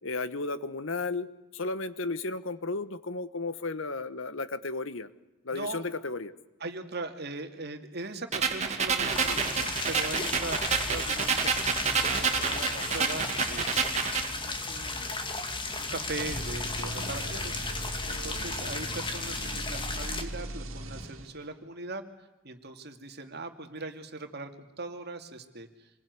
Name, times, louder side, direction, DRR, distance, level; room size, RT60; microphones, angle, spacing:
voice 1, 0.0-5.1 5.4-6.3, left 3 dB, 65° left, 14 dB, 1.2 m, -34 dB
voice 2, 5.5-5.9 6.6-13.7 14.0-15.1 15.8-17.6 18.1-22.0 22.4-25.9, right 2 dB, 50° right, 6 dB, 2.5 m, -40 dB
sound 1, 8.3-14.3, right 5 dB, 30° right, 2.4 m, -29 dB
sound 2, 9.1-20.2, left 3 dB, 20° left, 2.1 m, -35 dB
sound 3, 16.1-21.6, right 1 dB, 70° right, 2.7 m, -39 dB
26.5 x 21.0 x 9.5 m, 1.0 s
head